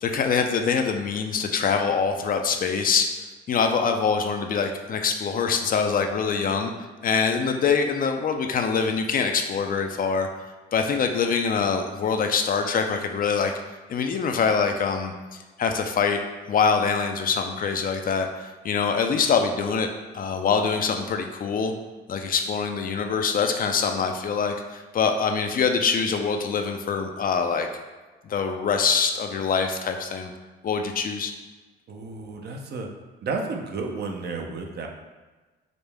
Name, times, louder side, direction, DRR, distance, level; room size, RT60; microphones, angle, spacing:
voice 1, 0.0-3.1 3.5-10.3 10.7-13.5 13.9-15.1 15.6-16.2 16.5-19.9 20.1-21.7 22.1-27.7 28.2-30.3 30.6-31.3, left 5 dB, 45° left, 5 dB, 0.4 m, -24 dB
voice 2, 31.9-32.9 33.2-34.9, right 4 dB, 55° right, 2 dB, 0.6 m, -32 dB
5.1 x 2.1 x 3.4 m, 1.3 s
cardioid pair, 90°, 20 cm